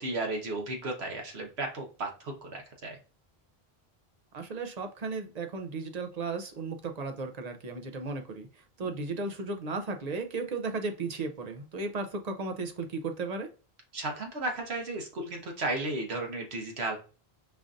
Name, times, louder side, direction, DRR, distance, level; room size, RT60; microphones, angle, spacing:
voice 1, 0.0-3.0 13.9-17.0, right 2 dB, 80° right, 2 dB, 1.3 m, -34 dB
voice 2, 4.3-13.5, right 3 dB, 50° right, 5 dB, 0.6 m, -35 dB
5.0 x 2.5 x 2.4 m, 0.36 s
omnidirectional pair, 1.1 m